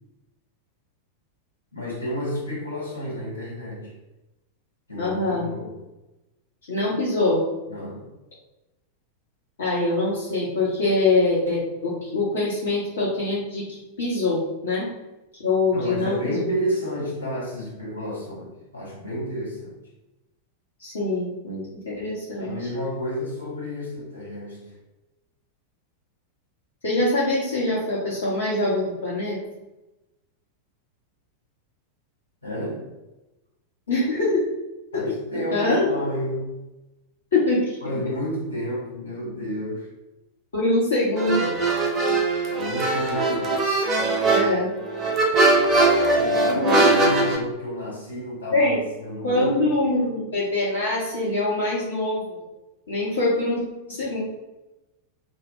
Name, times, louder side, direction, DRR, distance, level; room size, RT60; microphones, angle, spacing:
voice 1, 1.7-3.9 4.9-5.8 7.7-8.1 15.7-19.8 22.4-24.8 32.4-32.9 34.9-36.6 37.8-39.9 42.5-43.6 46.1-49.7, equal, 85° left, -6 dB, 1.0 m, -31 dB
voice 2, 5.0-5.5 6.7-7.4 9.6-14.9 15.4-16.4 20.8-22.6 26.8-29.4 33.9-34.5 34.9-35.0 35.3-35.9 37.3-37.6 40.5-41.5 44.3-44.7 46.5-46.8 47.1-47.2 48.5-48.8 49.2-52.4 52.9-53.6 53.9-54.2, left 2 dB, 65° left, -8 dB, 0.7 m, -24 dB
sound 1, 41.2-47.4, right 2 dB, 25° right, 0.5 m, -21 dB
2.1 x 2.0 x 3.5 m, 1.0 s
figure-of-eight pair, 90°, 0 cm